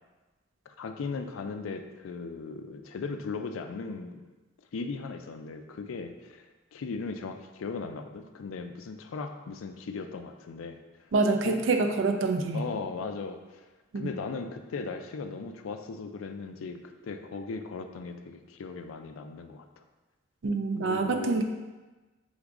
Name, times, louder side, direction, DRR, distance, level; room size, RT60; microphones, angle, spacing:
voice 1, 0.7-4.2 4.7-6.5 6.7-10.8 11.4-11.6 12.5-13.7 13.9-19.7 20.8-21.4, left 4 dB, 80° left, 7 dB, 0.4 m, -37 dB
voice 2, 11.1-12.7 13.9-14.1 20.4-21.4, right 3 dB, 70° right, 5 dB, 0.4 m, -26 dB
3.9 x 3.6 x 3.6 m, 1.2 s
head